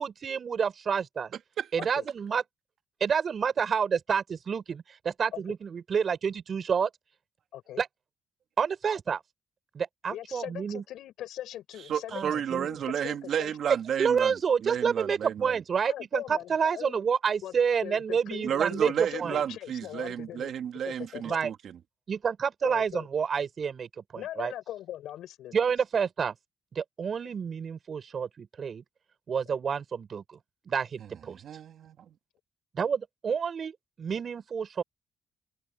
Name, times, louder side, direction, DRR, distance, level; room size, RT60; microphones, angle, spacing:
voice 1, 0.0-1.3 1.7-2.4 3.0-6.9 7.8-7.9 8.6-9.2 9.7-10.8 12.1-12.7 14.0-19.4 21.2-21.5 22.1-24.5 25.5-26.3 26.7-28.8 29.3-30.2 30.7-31.4 32.7-34.8, right 6 dB, 50° right, 6.3 m, -29 dB
voice 2, 7.5-7.8 10.1-13.6 15.8-17.0 17.4-17.5 17.8-20.5 20.9-21.4 22.6-23.1 24.1-25.7 29.5-29.6, left 12 dB, 80° left, 6.7 m, -41 dB
voice 3, 11.9-15.5 18.4-21.8 31.4-32.1, right 9 dB, 65° right, 2.4 m, -32 dB
open air
cardioid pair, 90°, 0 cm